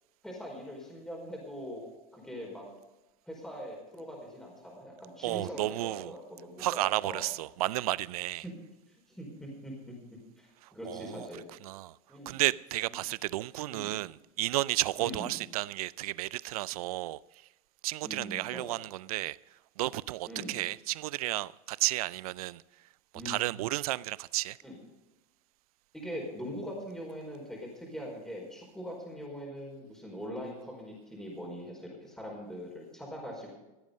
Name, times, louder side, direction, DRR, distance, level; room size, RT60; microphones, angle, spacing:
voice 1, 0.2-1.8 2.1-2.6 3.3-7.2 8.4-8.5 9.1-9.9 10.4-11.4 12.1-12.4 13.7-14.0 15.0-15.4 18.0-18.8 20.3-20.6 23.1-23.5 24.6-24.8 25.9-33.6, equal, 5° left, 4.8 m, -42 dB
voice 2, 5.2-6.1 6.6-8.4 10.6-11.3 11.6-12.0 12.3-17.5 17.8-22.6 23.2-24.6, right 17 dB, 90° right, 0.4 m, -32 dB
16.0 x 9.4 x 5.3 m
supercardioid pair, 100°, 18 cm